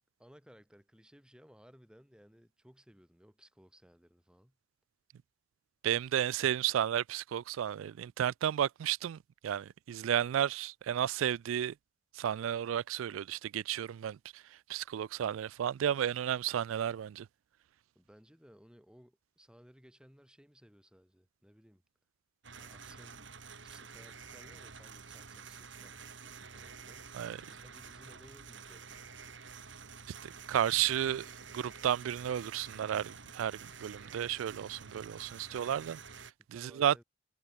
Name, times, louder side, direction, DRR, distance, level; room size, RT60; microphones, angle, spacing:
voice 1, 0.0-4.6 17.9-21.8 22.5-23.3 23.6-27.1 27.5-29.1 36.5-37.0, equal, 5° right, 4.3 m, -60 dB
voice 2, 5.8-11.8 12.1-17.3 27.1-27.4 30.2-37.0, right 10 dB, 80° right, 0.3 m, -33 dB
sound 1, 22.4-36.3, right 5 dB, 65° right, 4.2 m, -49 dB
head